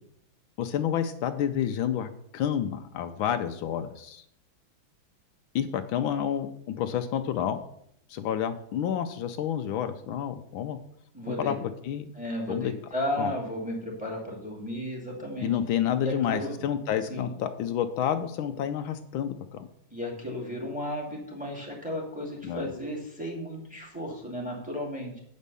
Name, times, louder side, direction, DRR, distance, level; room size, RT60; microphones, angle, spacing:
voice 1, 0.6-4.2 5.5-7.6 8.1-10.8 11.3-12.1 12.5-12.7 13.2-13.3 15.4-19.7 22.4-22.7, left 9 dB, 80° left, 9 dB, 1.4 m, -29 dB
voice 2, 11.1-11.5 12.1-15.5 16.0-16.6 17.1-17.3 19.9-25.2, equal, 5° right, -1 dB, 2.2 m, -34 dB
8.2 x 5.3 x 6.8 m, 0.73 s
omnidirectional pair, 2.3 m